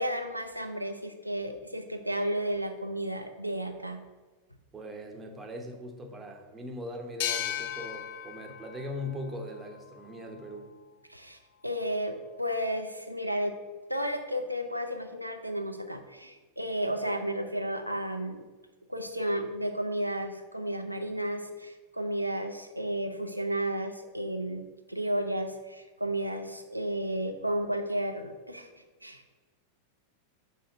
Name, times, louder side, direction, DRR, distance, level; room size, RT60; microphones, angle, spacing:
voice 1, 0.0-4.0 11.1-13.6 13.9-18.4 18.9-24.6 24.9-28.7 29.0-29.4, right 1 dB, 90° right, 5 dB, 0.4 m, -33 dB
voice 2, 4.7-10.7, left 1 dB, 15° right, 3 dB, 0.9 m, -40 dB
sound 1, 7.2-10.6, left 11 dB, 50° left, 0.4 m, -37 dB
6.4 x 3.6 x 5.2 m, 1.2 s
figure-of-eight pair, 90°, 0 cm